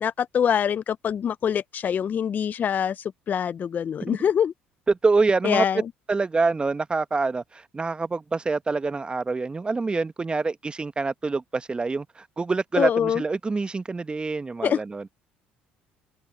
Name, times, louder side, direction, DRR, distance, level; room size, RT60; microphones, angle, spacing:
voice 1, 0.0-4.5 5.4-5.8 12.8-13.2 14.6-14.8, left 8 dB, 40° left, 0.4 m, -24 dB
voice 2, 4.9-5.6 6.1-15.1, right 3 dB, 25° right, 1.1 m, -26 dB
supercardioid pair, 75°, 4 cm